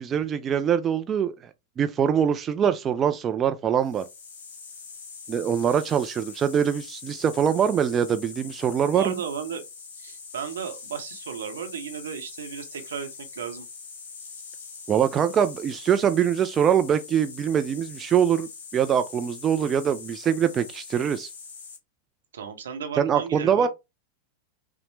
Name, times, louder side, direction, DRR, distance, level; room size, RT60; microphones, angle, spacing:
voice 1, 0.0-1.4 1.8-4.0 5.3-9.2 14.9-21.3 23.0-23.7, right 8 dB, 25° right, 0.3 m, -23 dB
sound 1, 3.8-21.8, left 5 dB, 60° left, 1.0 m, -43 dB
voice 2, 8.9-9.6 10.0-13.7 22.3-23.7, right 7 dB, 65° right, 0.8 m, -34 dB
5.5 x 2.0 x 3.1 m
figure-of-eight pair, 90°, 0 cm